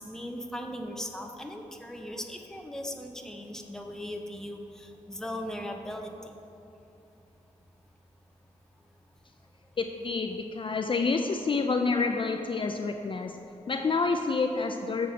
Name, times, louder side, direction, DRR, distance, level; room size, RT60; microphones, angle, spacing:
voice 1, 0.0-6.3, equal, 5° left, 3 dB, 0.7 m, -38 dB
voice 2, 9.8-13.4 13.7-15.1, left 4 dB, 40° left, 5 dB, 0.4 m, -28 dB
7.5 x 5.9 x 5.1 m, 2.8 s
cardioid pair, 80°, 13 cm